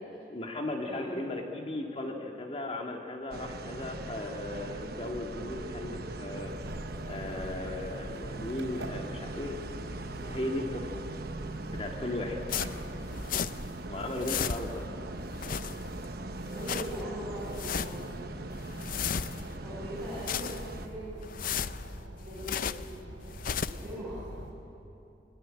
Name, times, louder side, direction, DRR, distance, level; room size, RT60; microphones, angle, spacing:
voice 1, 0.3-6.7 7.1-11.0 11.7-12.4 13.9-15.0, left 1 dB, 30° left, 1 dB, 2.2 m, -37 dB
voice 2, 0.8-1.2 16.4-18.1 19.6-21.3 21.6-22.6 22.9-23.1 23.7-24.2, equal, ahead, -12 dB, 7.7 m, -41 dB
sound 1, 3.3-20.9, right 2 dB, 55° right, 1.1 m, -41 dB
sound 2, 6.2-24.5, right 1 dB, 85° right, 4.6 m, -45 dB
sound 3, 12.5-13.8 14.0-14.9 15.3-16.1 16.4-17.0 17.4-18.1 18.5-19.6 20.0-20.8 21.2-22.9 23.3-23.9, left 7 dB, 45° left, 0.5 m, -35 dB
23.0 x 22.5 x 8.9 m, 2.9 s
head